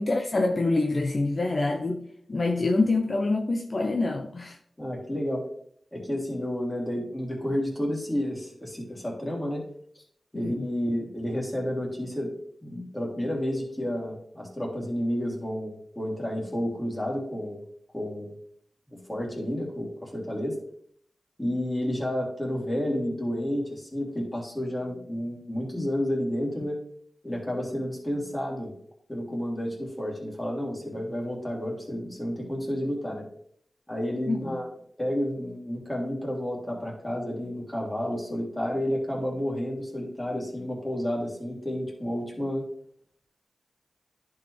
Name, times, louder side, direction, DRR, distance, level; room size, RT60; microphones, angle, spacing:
voice 1, 0.0-2.0 2.3-4.6 10.3-10.6 34.3-34.6, left 2 dB, 50° left, 3 dB, 0.7 m, -26 dB
voice 2, 4.8-5.4 5.9-9.6 10.3-12.3 12.6-17.6 17.9-18.3 19.1-20.6 21.4-26.8 27.2-28.7 29.1-33.2 33.9-34.7 35.0-42.6, equal, 15° left, -2 dB, 2.8 m, -30 dB
10.5 x 4.7 x 3.3 m, 0.65 s
cardioid pair, 50°, 0 cm